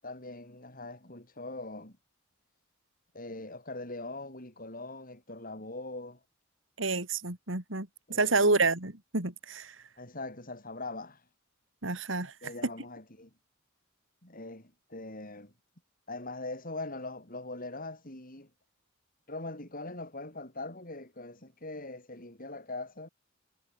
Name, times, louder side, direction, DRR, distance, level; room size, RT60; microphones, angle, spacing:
voice 1, 0.0-2.0 3.1-6.2 8.1-8.7 10.0-11.2 12.4-13.3 14.2-15.5 16.1-18.5 19.3-23.1, left 2 dB, 45° left, 7.5 m, -42 dB
voice 2, 6.8-9.8 11.8-12.3, right 3 dB, 70° right, 3.8 m, -29 dB
head